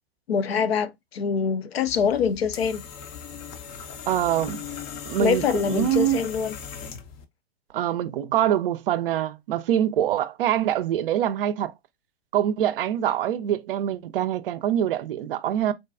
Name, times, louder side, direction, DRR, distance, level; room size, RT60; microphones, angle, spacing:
voice 1, 0.3-2.8 5.2-6.5, left 6 dB, 80° left, 0.6 m, -24 dB
sound 1, 1.9-7.2, left 7 dB, 30° left, 0.5 m, -38 dB
voice 2, 4.1-4.6 5.1-6.2 7.7-11.7 12.3-15.7, right 11 dB, 65° right, 0.5 m, -24 dB
3.9 x 2.2 x 2.3 m
hypercardioid pair, 110°, 31 cm